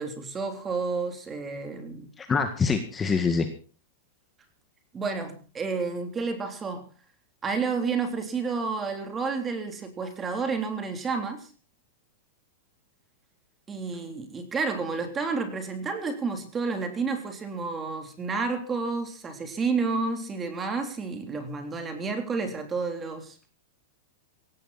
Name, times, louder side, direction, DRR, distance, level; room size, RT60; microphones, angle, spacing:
voice 1, 0.0-2.1 4.9-6.9 7.4-11.5 13.7-23.4, right 4 dB, 15° right, 7 dB, 3.4 m, -30 dB
voice 2, 2.2-3.5, left 5 dB, 15° left, 7 dB, 1.8 m, -25 dB
17.5 x 16.5 x 4.2 m, 0.38 s
supercardioid pair, 150°, 0 cm